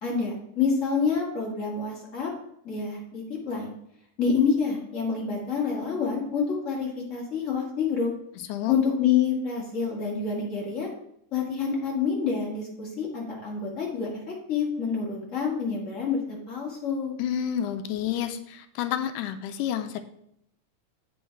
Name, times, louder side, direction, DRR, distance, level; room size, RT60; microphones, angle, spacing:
voice 1, 0.0-2.3 2.6-3.7 4.2-8.1 8.7-10.9 11.3-17.1, left 6 dB, 30° left, -2 dB, 1.8 m, -27 dB
voice 2, 8.4-8.7 17.2-20.0, left 10 dB, 80° left, 9 dB, 2.1 m, -30 dB
8.2 x 5.5 x 4.6 m, 0.74 s
omnidirectional pair, 3.7 m